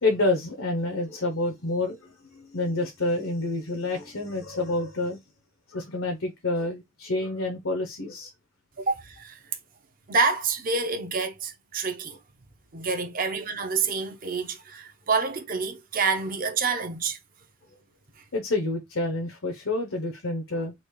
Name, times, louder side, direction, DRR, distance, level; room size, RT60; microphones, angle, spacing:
voice 1, 0.0-5.2 5.7-8.3 18.3-20.7, left 2 dB, 85° left, 1.1 m, -28 dB
voice 2, 8.8-9.4 10.1-12.2 12.7-17.2, right 4 dB, 45° right, 0.8 m, -27 dB
4.1 x 2.5 x 4.8 m
head